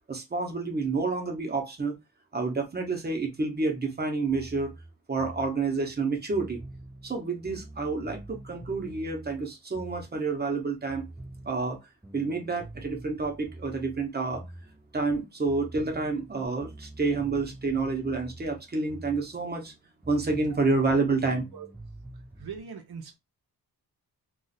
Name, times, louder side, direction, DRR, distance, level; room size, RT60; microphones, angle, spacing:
voice 1, 0.1-2.0 2.3-4.7 5.1-6.6 7.0-11.1 11.4-11.8 12.1-14.4 14.9-19.7 20.1-21.4, right 3 dB, 25° right, 0.8 m, -29 dB
sound 1, 4.3-10.6 10.9-15.2 15.5-19.7 20.0-22.6, right 1 dB, 5° right, 0.3 m, -46 dB
voice 2, 22.4-23.1, right 6 dB, 70° right, 0.7 m, -41 dB
2.5 x 2.4 x 4.0 m
wide cardioid pair, 165°, 39 cm